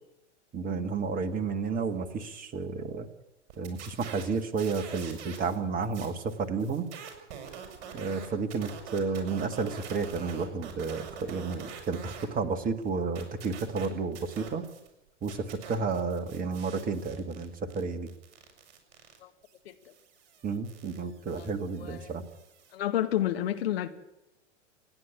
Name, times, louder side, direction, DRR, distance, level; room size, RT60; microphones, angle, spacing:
voice 1, 0.5-3.1 3.6-6.9 7.9-14.6 15.2-18.1 20.4-22.2, right 4 dB, 25° right, 1.9 m, -31 dB
sound 1, 3.5-5.6 5.8-12.3 12.6-14.9 15.2-22.7, right 7 dB, 40° right, 6.0 m, -46 dB
voice 2, 21.3-22.1 22.7-23.9, left 12 dB, 55° left, 2.1 m, -30 dB
28.0 x 9.9 x 9.8 m
figure-of-eight pair, 95°, 36 cm